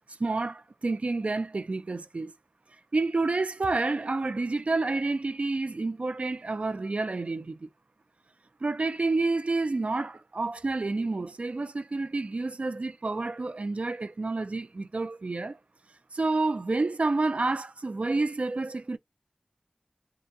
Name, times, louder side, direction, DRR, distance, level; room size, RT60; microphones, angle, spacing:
voice 1, 0.2-2.3 2.9-7.7 8.6-15.6 16.1-19.0, right 3 dB, 70° right, 0.4 m, -29 dB
3.8 x 2.3 x 2.5 m
wide cardioid pair, 45°, 2 cm